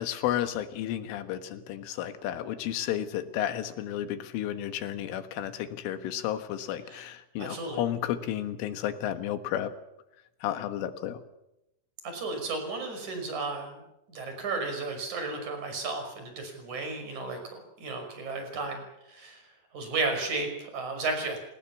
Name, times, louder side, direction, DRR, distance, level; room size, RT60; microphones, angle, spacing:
voice 1, 0.0-9.7 10.4-11.2, left 11 dB, 85° left, 10 dB, 4.0 m, -32 dB
voice 2, 7.4-7.8 12.0-13.8 14.1-17.4 17.8-18.8 19.1-19.4 19.7-21.4, right 3 dB, 40° right, 5 dB, 6.7 m, -33 dB
28.5 x 19.5 x 7.2 m, 0.87 s
omnidirectional pair, 5.5 m